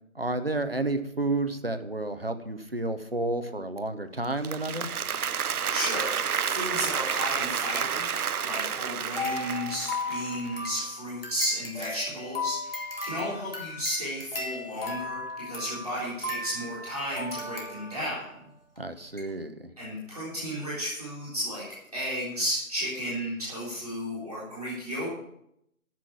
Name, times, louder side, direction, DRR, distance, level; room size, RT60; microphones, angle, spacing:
voice 1, 0.1-4.9 18.8-19.7, right 2 dB, 40° right, 9 dB, 1.0 m, -31 dB
Applause, 4.2-10.5, right 7 dB, 85° right, 0.6 m, -30 dB
voice 2, 5.5-18.3 19.8-21.6 21.9-25.1, equal, ahead, -26 dB, 2.4 m, -33 dB
sound 1, 9.1-18.3 18.8-18.9 19.2-19.3, left 2 dB, 40° left, 2.5 m, -36 dB
14.0 x 6.1 x 7.1 m, 0.77 s
figure-of-eight pair, 175°, 43 cm